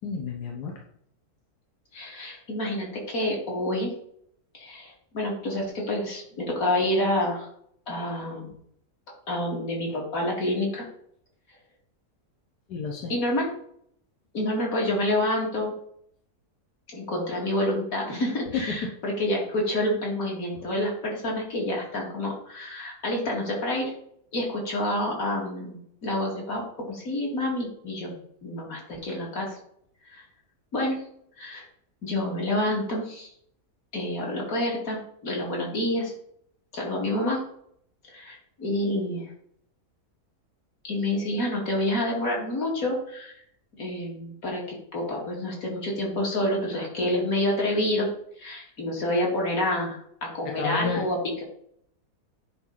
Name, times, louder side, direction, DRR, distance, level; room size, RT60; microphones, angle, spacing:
voice 1, 0.0-0.7 12.7-13.2 18.5-18.7 20.6-20.7 50.4-51.1, left 5 dB, 90° left, 0 dB, 1.6 m, -31 dB
voice 2, 1.9-3.9 4.5-7.5 7.9-8.5 9.3-10.9 13.1-13.5 14.3-15.7 16.9-23.9 24.3-29.6 30.1-30.2 30.7-31.0 31.4-31.6 32.0-33.3 33.9-36.1 36.7-37.4 38.1-39.3 40.8-43.4 43.8-48.1 48.4-51.4, left 1 dB, 60° left, -2 dB, 2.7 m, -28 dB
9.7 x 4.5 x 4.0 m, 0.67 s
omnidirectional pair, 1.7 m